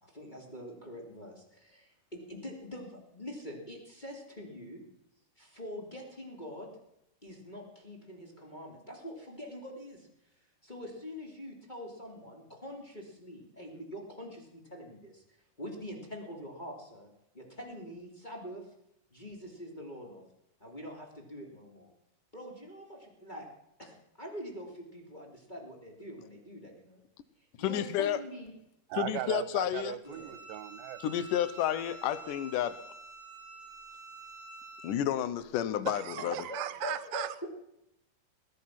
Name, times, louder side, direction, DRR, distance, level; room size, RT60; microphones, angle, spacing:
voice 1, 0.0-4.8 5.4-6.7 7.2-10.1 10.6-15.2 15.6-17.1 17.3-18.7 19.1-20.2 20.6-21.9 22.3-23.5 23.8-27.0 27.6-28.5 30.0-30.3 36.2-37.5, equal, 15° left, 0 dB, 2.4 m, -44 dB
voice 2, 27.6-28.2 29.0-30.0 31.0-32.8 34.8-36.4, left 11 dB, 70° left, 15 dB, 2.2 m, -31 dB
voice 3, 28.9-31.2 35.9-37.5, right 12 dB, 80° right, 15 dB, 2.6 m, -37 dB
Bowed string instrument, 30.0-35.0, right 3 dB, 85° left, 5.6 m, -48 dB
20.0 x 10.5 x 5.9 m, 0.83 s
omnidirectional pair, 4.4 m